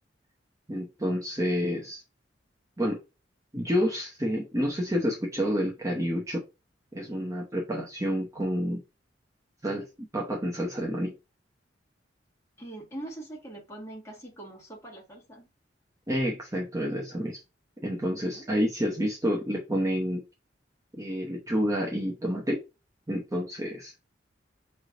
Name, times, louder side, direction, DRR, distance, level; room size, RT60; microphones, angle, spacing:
voice 1, 0.7-2.0 2.8-3.0 3.5-6.4 6.9-8.8 9.6-11.1 16.1-17.4 17.8-20.2 21.0-22.6 23.1-23.9, equal, 20° right, 0.8 m, -29 dB
voice 2, 12.6-15.5 18.1-18.5, right 1 dB, 15° left, 1.7 m, -43 dB
5.4 x 3.2 x 2.6 m
head